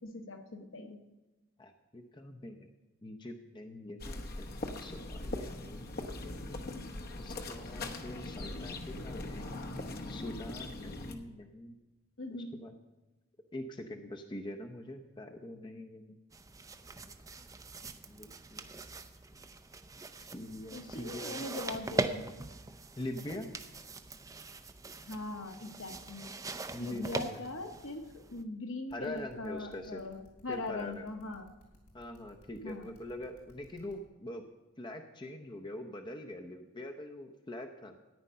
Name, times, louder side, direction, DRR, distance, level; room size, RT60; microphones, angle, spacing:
voice 1, 0.0-1.0 12.2-12.6 20.7-22.2 25.1-26.3 26.8-31.5 32.6-32.9, left 2 dB, 60° left, 5 dB, 1.3 m, -41 dB
voice 2, 1.6-2.7 3.0-6.0 7.2-9.7 10.1-11.8 12.4-12.7 13.5-16.2 17.0-17.1 18.1-18.7 20.2-21.4 23.0-23.5 26.7-27.4 28.9-30.0 30.5-31.0 31.9-34.4 34.8-38.0, left 1 dB, 20° left, 4 dB, 0.7 m, -44 dB
sound 1, 4.0-11.1, left 2 dB, 45° left, 1.0 m, -41 dB
sound 2, 16.3-28.4, right 3 dB, 15° right, 0.5 m, -41 dB
sound 3, 28.9-33.9, equal, 90° left, 3.6 m, -60 dB
13.5 x 9.6 x 5.6 m, 1.1 s
head